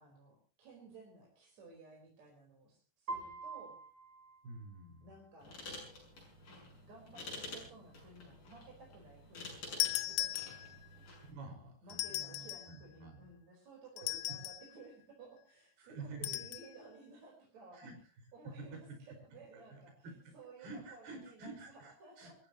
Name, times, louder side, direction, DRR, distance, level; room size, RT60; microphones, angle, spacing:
voice 1, 0.0-3.8 5.0-5.6 6.5-11.0 11.8-17.9 18.3-18.8 19.2-19.9 20.3-22.4, right 3 dB, 45° right, -1 dB, 5.5 m, -56 dB
Piano, 3.1-5.1, right 3 dB, 30° right, 3.9 m, -46 dB
voice 2, 4.4-5.1 11.2-13.3 14.1-14.2 15.8-16.3 17.7-17.9 18.4-18.8 19.3-22.3, right 3 dB, 75° right, 2 dB, 7.1 m, -50 dB
sound 1, 5.4-11.3, left 3 dB, 50° left, 7.9 m, -50 dB
sound 2, 9.8-11.0 11.9-12.8 14.0-14.7 16.2-16.7, left 15 dB, 70° left, 2.0 m, -37 dB
28.0 x 14.5 x 3.0 m, 0.38 s
omnidirectional pair, 4.6 m